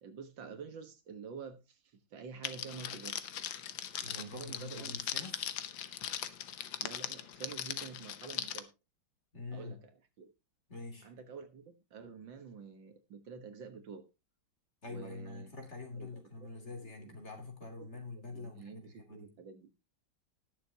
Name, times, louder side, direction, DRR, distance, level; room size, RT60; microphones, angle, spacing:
voice 1, 0.0-3.3 4.0-5.0 6.8-8.7 9.5-10.3 11.0-14.1 14.9-15.5 15.9-17.2 17.8-17.9 18.1-19.7, right 5 dB, 70° right, 2.0 m, -49 dB
Crackle, 2.4-8.6, left 10 dB, 75° left, 1.7 m, -40 dB
voice 2, 4.0-5.5 9.3-9.8 10.7-11.1 14.8-19.3, left 3 dB, 35° left, 3.4 m, -46 dB
20.0 x 7.0 x 2.8 m
omnidirectional pair, 2.1 m